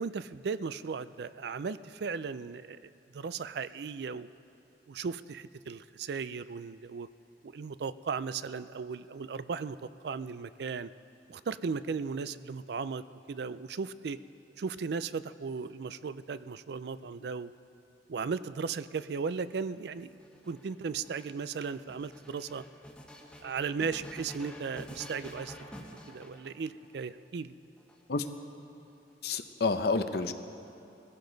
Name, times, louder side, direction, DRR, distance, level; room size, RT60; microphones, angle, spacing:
voice 1, 0.0-4.3 4.9-7.1 7.4-10.9 11.3-14.2 14.6-17.5 18.1-20.1 20.5-22.6 23.4-25.6 26.1-27.5, right 5 dB, 65° right, 14 dB, 0.4 m, -36 dB
sound 1, 19.0-27.0 27.8-28.6, equal, 5° left, 1.2 m, -49 dB
voice 2, 29.2-30.3, left 3 dB, 60° left, 9 dB, 0.7 m, -29 dB
21.5 x 15.5 x 4.0 m, 2.8 s
head